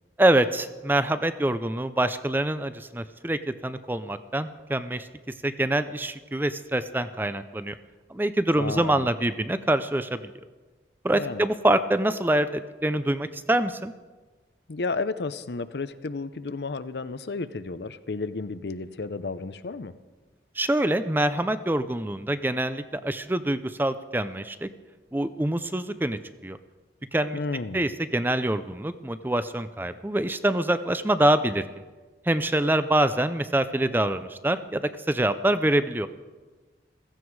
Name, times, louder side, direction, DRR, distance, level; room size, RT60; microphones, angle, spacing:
voice 1, 0.2-5.1 5.4-7.8 8.1-10.2 11.0-13.9 20.6-24.7 25.1-26.6 27.1-27.4 27.7-31.7 32.3-34.8 35.1-36.1, right 1 dB, 10° right, 12 dB, 0.5 m, -25 dB
voice 2, 8.6-9.1 11.1-11.5 14.7-19.9 27.3-27.9, left 3 dB, 70° left, 13 dB, 0.7 m, -32 dB
15.5 x 15.0 x 4.7 m, 1.3 s
head